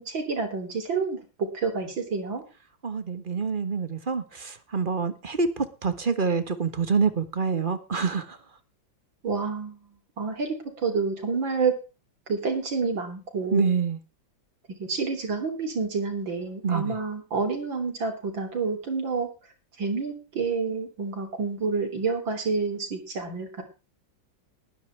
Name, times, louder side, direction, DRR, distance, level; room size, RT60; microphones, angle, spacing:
voice 1, 0.0-2.4 9.2-9.8 10.2-11.7 12.3-13.7 14.7-19.3 19.8-23.6, right 4 dB, 80° right, 5 dB, 4.0 m, -28 dB
voice 2, 2.8-8.4 13.5-14.0 16.6-16.9, right 5 dB, 30° right, 11 dB, 1.4 m, -26 dB
20.0 x 10.0 x 3.4 m, 0.31 s
omnidirectional pair, 2.1 m